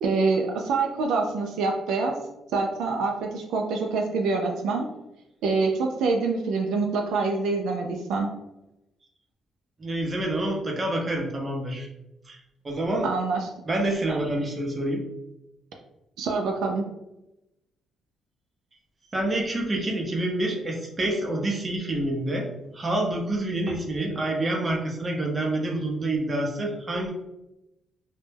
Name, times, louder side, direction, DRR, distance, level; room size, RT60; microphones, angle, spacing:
voice 1, 0.0-2.2 2.5-4.9 5.4-8.3 13.0-13.5 16.2-16.9, right 4 dB, 85° right, 2 dB, 0.3 m, -25 dB
voice 2, 9.8-11.9 12.3-12.4 12.6-13.1 13.7-15.0 19.1-22.5 22.7-27.1, right 1 dB, 30° right, 0 dB, 0.6 m, -27 dB
2.1 x 2.1 x 3.2 m, 0.92 s
cardioid pair, 90°, 0 cm